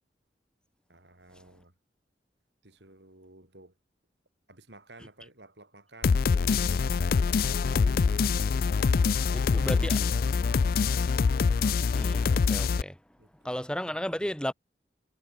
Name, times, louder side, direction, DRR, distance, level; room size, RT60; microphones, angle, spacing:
voice 1, 0.9-1.7 2.6-3.7 4.5-7.8 9.0-10.2 10.6-11.3 13.2-13.6, right 2 dB, 75° right, 7.2 m, -54 dB
sound 1, 6.0-12.8, left 5 dB, 55° left, 0.4 m, -25 dB
voice 2, 9.5-10.0 11.9-13.0 13.4-14.5, equal, 5° left, 3.0 m, -33 dB
head